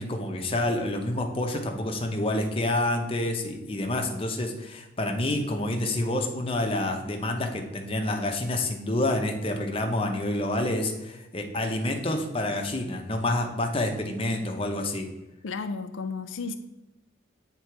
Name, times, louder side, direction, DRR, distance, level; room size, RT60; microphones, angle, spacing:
voice 1, 0.0-15.1, left 1 dB, 30° left, 0.8 m, -28 dB
voice 2, 15.4-16.5, left 4 dB, 85° left, 0.4 m, -33 dB
7.7 x 3.8 x 4.6 m
head